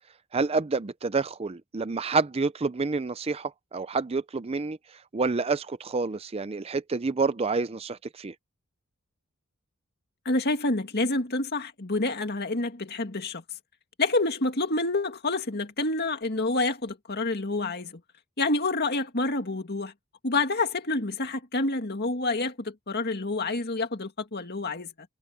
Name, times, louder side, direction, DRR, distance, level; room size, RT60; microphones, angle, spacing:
voice 1, 0.3-8.3, right 4 dB, 25° right, 0.5 m, -28 dB
voice 2, 10.3-13.4 14.0-18.0 18.4-19.9 20.2-24.9, left 2 dB, 50° left, 2.2 m, -28 dB
head